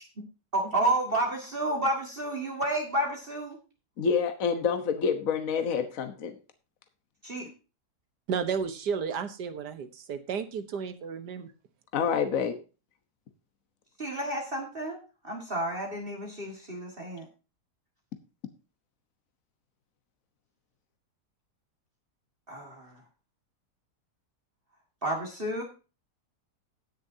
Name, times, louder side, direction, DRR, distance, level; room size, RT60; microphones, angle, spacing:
voice 1, 0.5-3.6 7.2-7.5 14.0-17.3 22.5-23.0 25.0-25.6, right 1 dB, 35° right, 0 dB, 2.1 m, -30 dB
voice 2, 4.0-6.3 11.9-12.6, left 6 dB, 55° left, 8 dB, 1.5 m, -27 dB
voice 3, 8.3-11.5, right 6 dB, 85° right, 10 dB, 1.7 m, -32 dB
19.0 x 6.8 x 2.7 m, 0.32 s
omnidirectional pair, 1.7 m